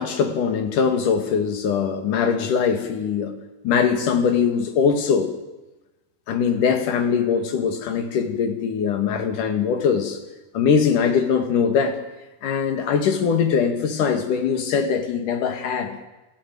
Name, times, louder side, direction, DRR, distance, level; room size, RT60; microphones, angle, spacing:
voice 1, 0.0-3.3 3.6-5.3 6.3-10.2 10.5-12.0 12.4-16.0, left 6 dB, 60° left, 7 dB, 3.6 m, -21 dB
29.5 x 16.5 x 7.8 m, 1.1 s
omnidirectional pair, 4.3 m